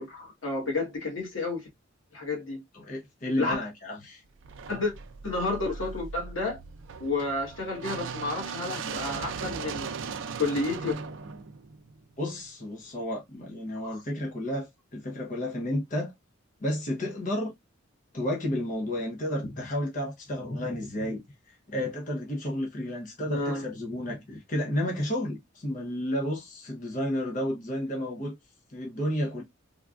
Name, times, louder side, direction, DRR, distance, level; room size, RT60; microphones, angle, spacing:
voice 1, 0.0-1.6 2.1-2.6 3.4-3.6 4.7-4.9 5.2-6.6 7.0-9.9 10.4-10.9 13.8-14.0 23.3-23.7, left 3 dB, 85° left, 1.4 m, -31 dB
voice 2, 2.7-4.2 12.2-16.1 16.6-17.5 18.1-21.2 21.7-28.4 28.7-29.4, left 1 dB, 40° left, 0.7 m, -31 dB
sound 1, 4.4-12.5, right 5 dB, 70° right, 0.4 m, -38 dB
3.4 x 2.3 x 2.4 m
head